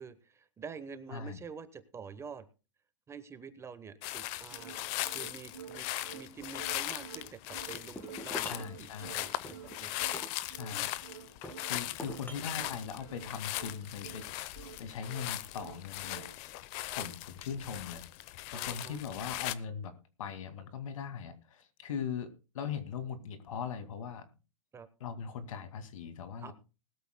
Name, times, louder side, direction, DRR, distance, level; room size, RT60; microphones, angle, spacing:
voice 1, 0.0-2.5 3.1-4.8 5.1-5.9 6.1-9.9 10.7-10.9 16.9-17.0 18.5-19.0 24.7-24.9 26.4-26.5, right 6 dB, 15° right, 11 dB, 1.0 m, -47 dB
voice 2, 1.1-1.4 8.5-9.1 10.5-10.9 11.6-16.2 16.9-18.0 18.5-24.3 25.0-26.5, left 7 dB, 70° left, 9 dB, 2.2 m, -40 dB
sound 1, 4.0-19.6, left 16 dB, 40° left, 0.8 m, -39 dB
sound 2, 4.5-16.4, right 9 dB, 85° right, 2.8 m, -50 dB
sound 3, 7.7-8.8 9.4-11.0 11.4-12.8, left 1 dB, 10° left, 1.9 m, -45 dB
20.0 x 13.0 x 2.2 m, 0.31 s
hypercardioid pair, 130°, 18 cm